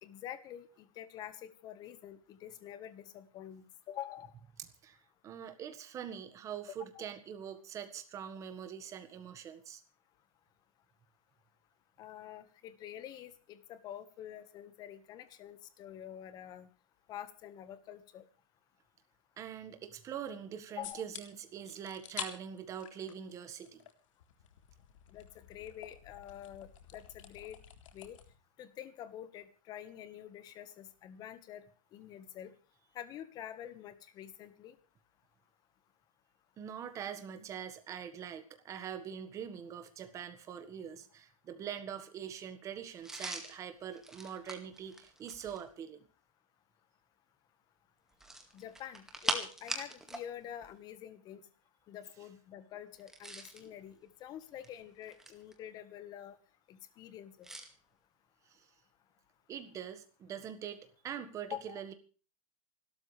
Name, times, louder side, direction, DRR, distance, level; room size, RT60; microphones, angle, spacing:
voice 1, 0.0-4.3 6.9-7.1 12.0-16.7 17.1-18.3 20.8-21.0 25.1-27.6 27.9-28.2 28.6-31.6 31.9-32.5 32.9-34.8 48.5-51.4 51.9-56.4 56.7-57.5 61.4-61.8, left 11 dB, 25° left, 13 dB, 1.4 m, -47 dB
voice 2, 5.2-9.8 19.4-23.8 36.6-46.0 58.4-58.7 59.5-61.9, right 8 dB, 20° right, 9 dB, 1.6 m, -43 dB
sound 1, 20.8-21.2 21.6-22.3 22.6-23.9 24.2-28.3, left 9 dB, 65° left, 3.7 m, -48 dB
sound 2, 43.0-45.7 48.1-50.3 50.5-50.7 52.9-53.7 54.4-55.5 57.4-57.7, right 1 dB, 5° right, 2.0 m, -41 dB
28.0 x 13.0 x 3.4 m, 0.38 s
supercardioid pair, 170°, 17 cm